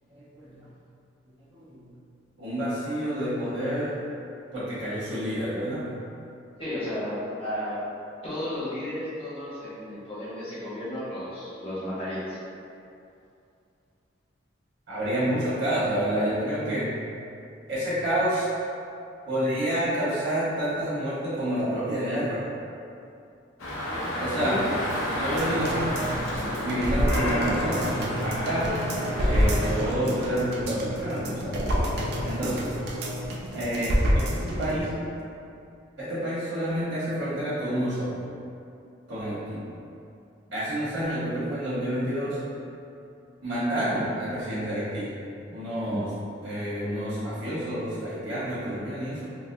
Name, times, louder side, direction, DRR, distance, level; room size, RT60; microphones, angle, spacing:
voice 1, 0.1-0.7 1.5-1.9 2.4-4.0 4.5-5.9 14.9-16.9 17.7-18.5 19.3-22.4 24.2-24.6 25.1-25.9 26.6-28.8 29.2-31.6 32.2-33.0 33.5-35.0 36.0-38.2 39.1-39.6 40.5-42.4 43.4-45.1 45.5-46.1 46.4-49.4, right 1 dB, 75° right, -10 dB, 1.1 m, -29 dB
voice 2, 6.6-7.8 8.2-12.4 24.4-24.6 45.8-46.0, left 1 dB, 30° left, -10 dB, 1.0 m, -33 dB
Dog, 23.6-29.9, equal, 85° left, 0.6 m, -31 dB
sound 1, 25.4-34.8 35.2-35.3, equal, 55° right, 0.4 m, -28 dB
4.0 x 2.1 x 2.7 m, 2.6 s
head